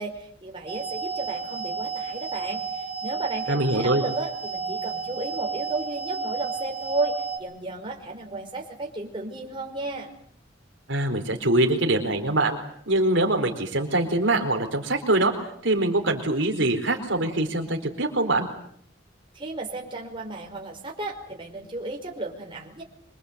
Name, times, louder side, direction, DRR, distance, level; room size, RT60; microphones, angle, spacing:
voice 1, 0.0-10.1 19.3-22.8, right 2 dB, 25° right, 0 dB, 5.1 m, -33 dB
sound 1, 0.7-7.4, right 5 dB, 10° right, 6.4 m, -32 dB
voice 2, 3.5-4.0 10.9-12.6 12.9-15.3 15.6-18.5, right 2 dB, 70° right, 3 dB, 4.3 m, -23 dB
25.5 x 24.5 x 8.2 m, 0.65 s
head